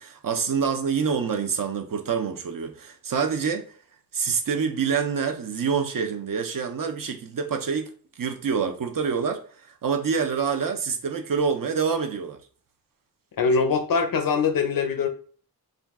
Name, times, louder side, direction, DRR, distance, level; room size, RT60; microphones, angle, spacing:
voice 1, 0.0-3.7 4.1-7.9 8.2-12.4, right 6 dB, 60° right, 0.6 m, -26 dB
voice 2, 13.4-15.1, left 5 dB, 60° left, 0.6 m, -22 dB
2.5 x 2.3 x 3.4 m
wide cardioid pair, 85°, 38 cm